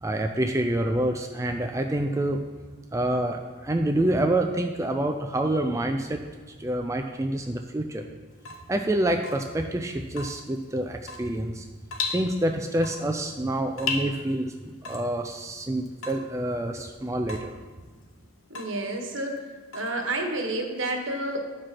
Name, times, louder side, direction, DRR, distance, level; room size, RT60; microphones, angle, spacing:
voice 1, 0.0-2.4 2.9-6.2 6.6-8.1 8.7-11.7 12.1-14.5 14.8-17.5, right 1 dB, 15° right, 4 dB, 0.4 m, -27 dB
Water tap faucet / Drip, 8.3-20.5, left 4 dB, 85° left, 0.9 m, -38 dB
voice 2, 18.5-19.5 19.7-21.4, right 1 dB, 70° right, 2 dB, 1.4 m, -30 dB
11.5 x 4.8 x 5.9 m, 1.4 s
head